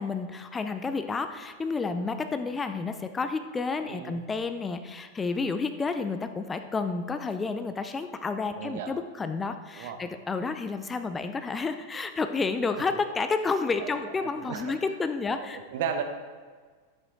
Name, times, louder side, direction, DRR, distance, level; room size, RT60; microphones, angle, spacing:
voice 1, 0.0-15.6, left 4 dB, 15° left, 8 dB, 0.5 m, -30 dB
voice 2, 8.6-9.0 9.7-10.0 13.8-13.9 14.2-14.7 15.3-16.0, right 7 dB, 55° right, 6 dB, 1.0 m, -35 dB
10.5 x 7.9 x 3.8 m, 1.5 s
figure-of-eight pair, 90°, 0 cm